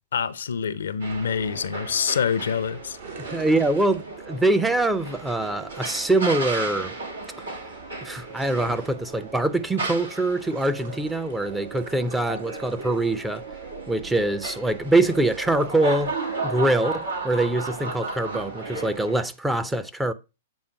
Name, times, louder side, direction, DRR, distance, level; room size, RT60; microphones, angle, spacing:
voice 1, 0.1-3.0, left 7 dB, 75° left, 0.5 m, -26 dB
sound 1, 1.0-19.2, right 3 dB, 85° right, 2.1 m, -34 dB
sound 2, 3.0-4.5 8.5-9.0 10.1-11.5 11.8-13.1 14.5-14.7 15.3-16.3 16.6-16.7 17.0-17.1 17.7-18.0, right 5 dB, 65° right, 1.7 m, -45 dB
voice 2, 3.3-6.9 8.0-13.4 13.9-16.1 16.4-20.1, right 2 dB, 10° right, 0.5 m, -24 dB
8.0 x 3.6 x 4.4 m
hypercardioid pair, 115°, 0 cm